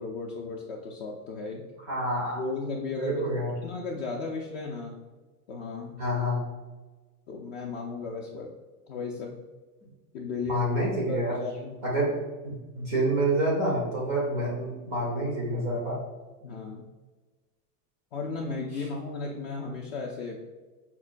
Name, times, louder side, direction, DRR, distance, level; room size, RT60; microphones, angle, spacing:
voice 1, 0.0-1.6 2.3-3.2 3.6-5.0 5.5-6.0 7.3-8.5 8.9-9.4 10.1-10.7 11.1-11.8 16.4-16.9 18.1-20.4, left 3 dB, 45° left, -1 dB, 0.4 m, -35 dB
voice 2, 1.9-2.4 2.9-3.5 6.0-6.4 10.5-11.3 11.8-12.1 12.4-16.0, right 1 dB, 25° right, -3 dB, 0.3 m, -27 dB
5.4 x 2.2 x 2.4 m, 1.3 s
supercardioid pair, 145°, 47 cm